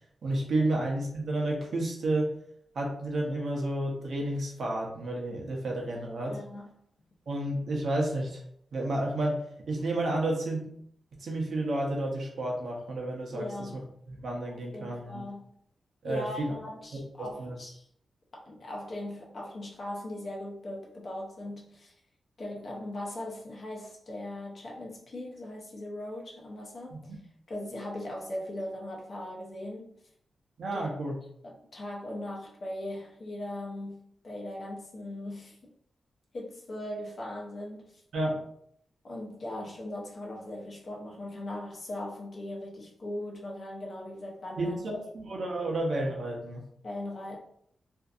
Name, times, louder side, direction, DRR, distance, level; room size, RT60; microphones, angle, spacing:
voice 1, 0.2-2.3 2.7-6.4 7.3-8.4 8.7-9.4 9.7-10.7 11.2-13.8 14.1-15.2 16.0-16.5 17.2-17.6 27.1-27.2 30.6-31.2 38.1-38.4 44.6-46.6, right 1 dB, 65° right, 0.6 m, -31 dB
voice 2, 6.3-6.7 13.3-13.8 14.5-15.5 16.0-17.9 18.3-21.9 22.4-27.2 27.5-30.0 30.7-30.9 31.4-35.6 36.3-38.0 39.0-44.8 46.8-47.4, left 1 dB, 45° left, 0.7 m, -39 dB
2.6 x 2.4 x 2.4 m
wide cardioid pair, 140°, 0 cm